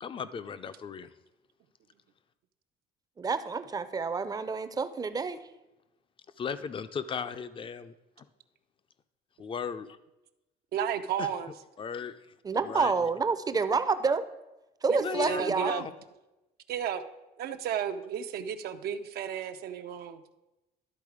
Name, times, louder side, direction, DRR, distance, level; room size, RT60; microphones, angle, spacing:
voice 1, 0.0-1.1 6.4-8.3 9.4-9.9 11.2-11.3 11.8-12.2 12.6-13.1 15.0-15.9, left 6 dB, 30° left, 12 dB, 0.5 m, -36 dB
voice 2, 3.2-5.4 12.4-14.2 14.8-15.7, right 4 dB, 20° right, 12 dB, 0.5 m, -28 dB
voice 3, 10.7-11.5 14.9-15.8 16.7-17.0 17.4-20.2, right 9 dB, 65° right, 8 dB, 0.6 m, -33 dB
12.0 x 4.0 x 4.9 m, 1.0 s
cardioid pair, 110°, 17 cm